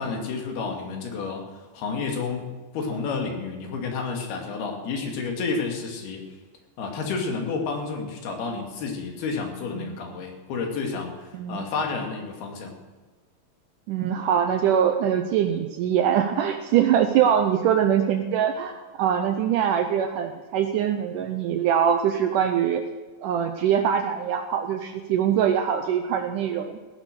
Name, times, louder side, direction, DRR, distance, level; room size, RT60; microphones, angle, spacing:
voice 1, 0.0-6.2 6.8-12.7, left 4 dB, 80° left, 2 dB, 4.1 m, -30 dB
voice 2, 11.3-11.7 13.9-22.8 23.2-26.8, right 9 dB, 75° right, 7 dB, 2.0 m, -23 dB
15.5 x 10.5 x 6.5 m, 1.2 s
omnidirectional pair, 4.5 m